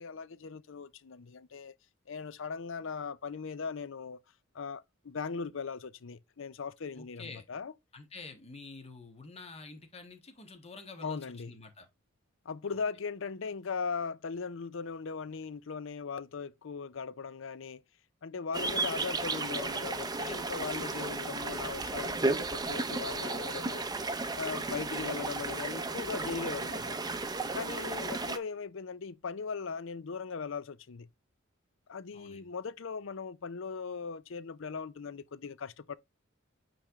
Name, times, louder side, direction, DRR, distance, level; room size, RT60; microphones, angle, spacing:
voice 1, 0.0-1.7 2.1-4.2 4.5-7.7 11.0-11.6 12.5-17.8 18.2-23.9 24.3-27.0 27.5-31.1 31.9-36.0, left 5 dB, 70° left, 0.6 m, -39 dB
voice 2, 6.9-7.4 7.9-11.9 32.1-32.5, left 3 dB, 30° left, 1.5 m, -48 dB
sound 1, 18.5-28.4, right 3 dB, 20° right, 0.6 m, -34 dB
8.9 x 3.4 x 3.6 m
head